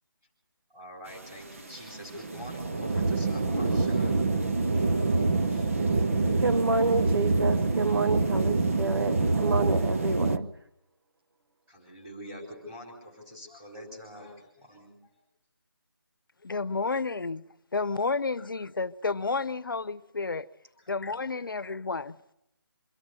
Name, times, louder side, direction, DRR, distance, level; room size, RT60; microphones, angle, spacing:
voice 1, 0.7-4.3 4.8-5.9 11.7-15.1 20.8-20.9 21.4-21.5, equal, 10° right, 4.5 m, -46 dB
sound 1, 1.1-10.4, right 3 dB, 35° right, 0.9 m, -26 dB
voice 2, 6.4-10.5, right 3 dB, 80° right, 1.2 m, -28 dB
voice 3, 16.4-17.4 17.7-20.5 20.9-22.2, left 4 dB, 65° left, 0.9 m, -31 dB
25.0 x 13.0 x 9.7 m
figure-of-eight pair, 175°, 12 cm